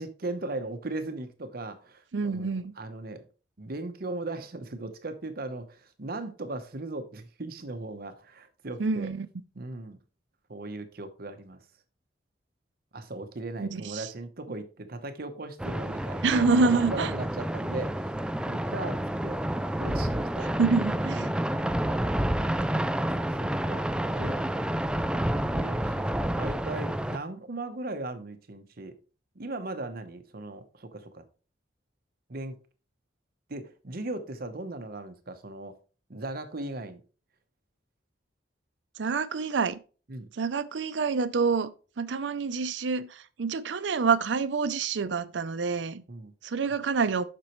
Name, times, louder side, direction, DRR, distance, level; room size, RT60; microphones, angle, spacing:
voice 1, 0.0-3.3 3.6-9.1 9.5-10.0 10.5-11.6 12.9-18.0 18.4-19.4 19.8-20.5 23.6-23.9 24.1-24.4 25.5-26.0 26.2-29.0 29.3-31.2 32.3-32.6 33.5-35.7 36.1-37.0 40.1-40.3 46.1-46.3 46.6-46.8, right 2 dB, 55° right, 0.9 m, -38 dB
voice 2, 2.1-2.7 8.8-9.3 13.6-14.1 16.2-17.1 20.6-21.3 39.0-39.8 40.4-46.0 46.4-47.2, right 4 dB, 80° right, 0.5 m, -27 dB
sound 1, 15.6-27.2, right 1 dB, 5° right, 0.3 m, -29 dB
7.4 x 6.0 x 3.1 m
head